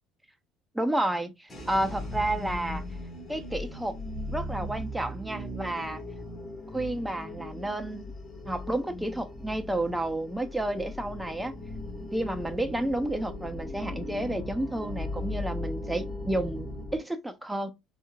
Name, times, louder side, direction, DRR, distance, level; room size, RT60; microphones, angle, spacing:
voice 1, 0.7-2.8 3.3-4.0 4.3-6.0 6.7-8.1 8.5-11.5 12.1-17.7, right 1 dB, 5° right, 0.6 m, -31 dB
sound 1, 1.5-17.0, left 1 dB, 25° left, 2.0 m, -38 dB
4.3 x 2.5 x 2.4 m
hypercardioid pair, 75°, 0 cm